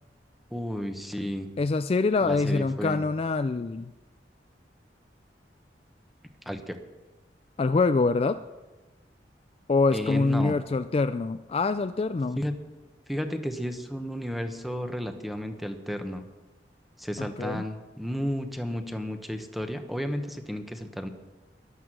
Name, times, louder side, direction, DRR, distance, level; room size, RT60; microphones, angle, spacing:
voice 1, 0.5-1.5 2.2-3.0 6.5-6.8 9.9-10.6 12.4-12.5 13.1-16.2 17.0-21.1, equal, ahead, 6 dB, 1.0 m, -32 dB
voice 2, 1.6-3.9 7.6-8.4 9.7-12.4 17.2-17.6, left 3 dB, 35° left, 10 dB, 0.3 m, -25 dB
14.0 x 11.5 x 6.1 m, 1.2 s
head